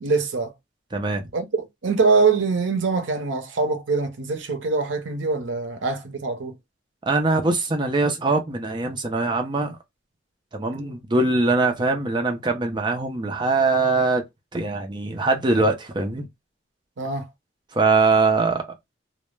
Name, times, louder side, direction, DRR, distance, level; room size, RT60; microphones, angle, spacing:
voice 1, 0.0-0.5 1.3-6.6 17.0-17.3, right 4 dB, 75° right, 0.6 m, -23 dB
voice 2, 0.9-1.3 7.1-9.8 10.5-14.2 14.5-16.3 17.7-18.6, right 3 dB, 25° right, 0.4 m, -22 dB
2.2 x 2.0 x 3.1 m
head